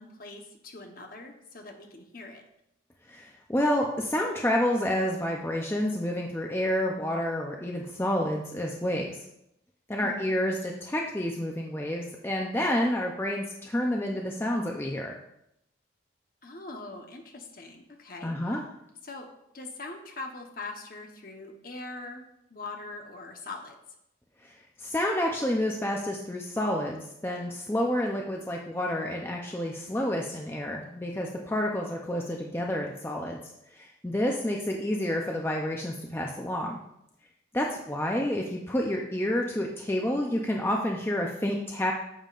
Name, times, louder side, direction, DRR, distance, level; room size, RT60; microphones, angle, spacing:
voice 1, 0.0-2.4 10.0-10.4 16.4-18.6 19.0-19.3 19.5-22.2 22.5-23.8 37.7-37.9, left 3 dB, 50° left, 3 dB, 1.0 m, -42 dB
voice 2, 3.1-9.1 9.9-15.1 18.2-18.6 24.4-24.5 24.8-33.4 33.8-36.8 37.5-41.9, left 1 dB, 10° left, 0 dB, 0.5 m, -29 dB
8.9 x 7.2 x 2.5 m, 0.80 s
head